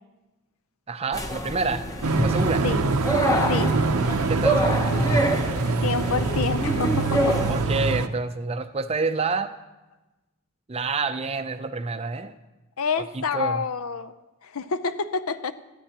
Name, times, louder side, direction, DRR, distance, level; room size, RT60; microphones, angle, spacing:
voice 1, 0.9-1.9 2.2-2.6 4.3-5.0 7.5-9.5 10.7-12.3 13.0-13.6, right 4 dB, 25° right, 9 dB, 0.5 m, -28 dB
sound 1, 1.1-7.6, right 1 dB, 15° left, 0.8 m, -26 dB
sound 2, 2.0-8.1, right 3 dB, 80° right, 0.7 m, -24 dB
voice 2, 3.5-3.8 5.7-7.4 12.8-14.1 14.4-15.5, left 5 dB, 75° left, 12 dB, 0.6 m, -28 dB
19.0 x 13.0 x 2.9 m, 1.1 s
head